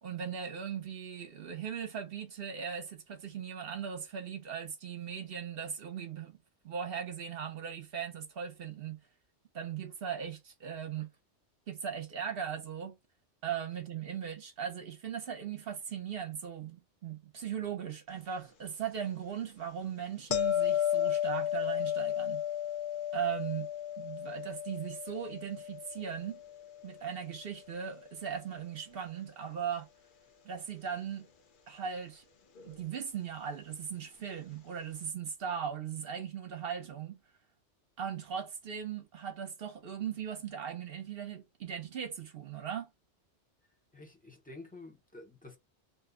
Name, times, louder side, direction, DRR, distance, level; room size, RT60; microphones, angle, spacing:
voice 1, 0.0-6.4 6.6-9.0 9.5-11.1 11.7-13.0 13.4-22.4 23.1-23.7 24.0-26.4 26.8-29.9 30.4-31.3 31.7-32.2 32.6-37.2 38.0-42.9, right 8 dB, 60° right, 0.9 m, -38 dB
sound 1, 20.3-27.3 32.6-32.7, left 11 dB, 55° left, 0.7 m, -33 dB
voice 2, 43.9-45.6, left 2 dB, 10° left, 0.5 m, -50 dB
2.6 x 2.1 x 3.6 m
omnidirectional pair, 1.2 m